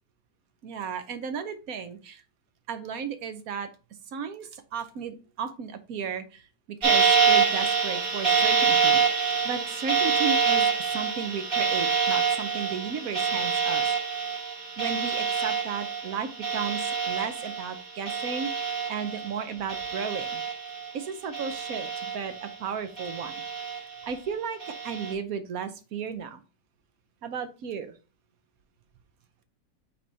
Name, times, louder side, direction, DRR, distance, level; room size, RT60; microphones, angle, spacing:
voice 1, 0.6-2.2 2.7-3.7 4.1-6.4 6.8-10.7 10.9-13.8 14.8-20.4 20.9-23.3 23.8-26.4 27.2-27.9, right 6 dB, 60° right, 10 dB, 1.2 m, -34 dB
sound 1, 6.8-19.4 19.7-20.9 21.3-22.5 23.0-24.0 24.6-25.1, right 5 dB, 30° right, 2.6 m, -26 dB
8.2 x 3.6 x 4.0 m, 0.34 s
omnidirectional pair, 1.8 m